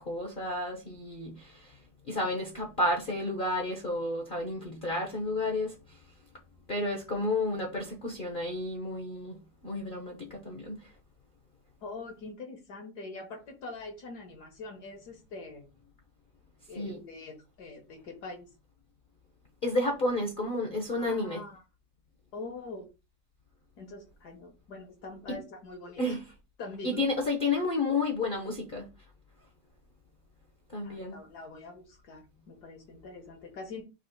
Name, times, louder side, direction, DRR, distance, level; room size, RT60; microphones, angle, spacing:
voice 1, 0.0-1.8 2.1-5.8 6.7-9.4 9.6-10.9 16.7-17.0 19.6-21.4 25.3-25.4 26.0-26.2 26.8-28.9 30.7-31.2, left 2 dB, 40° left, 0.8 m, -31 dB
voice 2, 11.8-15.7 16.7-18.5 20.9-21.6 22.3-22.9 23.8-26.2 26.6-27.0 30.8-33.8, left 3 dB, 65° left, 1.4 m, -44 dB
4.1 x 3.0 x 4.4 m
omnidirectional pair, 1.9 m